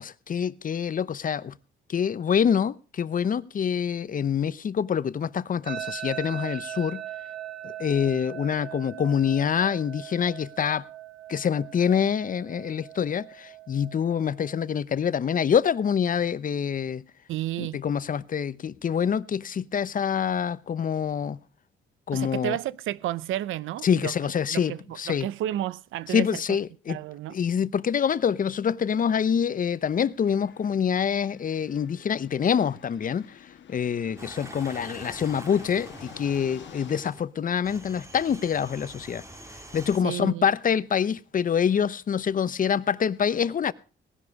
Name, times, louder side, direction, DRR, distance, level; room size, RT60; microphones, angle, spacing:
voice 1, 0.0-1.6 1.9-7.0 7.8-10.9 11.3-17.0 17.6-21.4 22.1-22.6 23.8-25.3 26.1-27.0 27.3-33.3 33.7-39.2 39.7-43.7, left 7 dB, 45° left, 0.8 m, -26 dB
sound 1, 5.7-14.7, right 12 dB, 65° right, 5.5 m, -40 dB
voice 2, 17.3-17.8 22.1-26.6 26.9-27.4 40.0-40.5, right 13 dB, 85° right, 0.7 m, -32 dB
sound 2, 29.9-37.1, left 9 dB, 65° left, 1.5 m, -49 dB
sound 3, 34.2-37.2 37.6-40.0, right 1 dB, 15° right, 2.3 m, -45 dB
18.5 x 11.0 x 4.8 m
cardioid pair, 90°, 20 cm